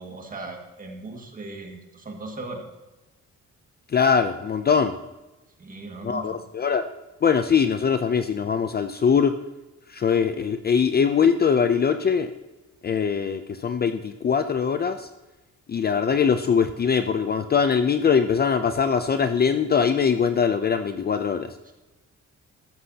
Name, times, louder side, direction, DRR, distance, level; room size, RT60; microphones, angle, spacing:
voice 1, 0.0-2.7 5.6-6.4 21.7-21.8, right 2 dB, 25° right, 2 dB, 1.9 m, -38 dB
voice 2, 3.9-4.9 6.0-6.9 7.2-9.4 9.9-12.3 12.8-15.1 15.7-21.6, left 6 dB, 35° left, 9 dB, 0.5 m, -22 dB
14.0 x 13.0 x 2.8 m, 1.1 s
wide cardioid pair, 165°, 30 cm